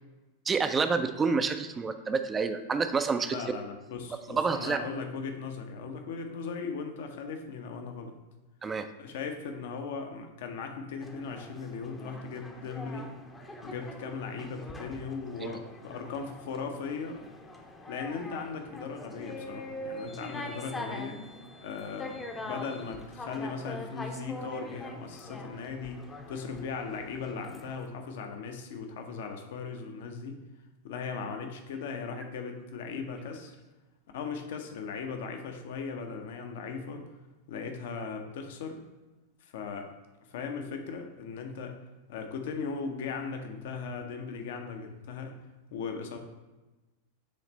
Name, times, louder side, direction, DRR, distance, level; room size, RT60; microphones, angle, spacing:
voice 1, 0.5-3.4 4.3-4.8 8.6-8.9 15.4-15.6, right 4 dB, 20° right, 9 dB, 0.4 m, -28 dB
voice 2, 3.3-8.1 9.0-13.1 13.6-17.2 17.9-21.2 21.6-30.4 30.8-33.6 34.1-37.0 37.5-38.8 39.4-39.9 40.3-41.8 42.1-45.3 45.7-46.2, left 5 dB, 55° left, 5 dB, 0.7 m, -38 dB
sound 1, 11.0-27.9, left 1 dB, 15° left, 0.7 m, -43 dB
7.4 x 3.3 x 4.1 m, 1.1 s
figure-of-eight pair, 90°, 0 cm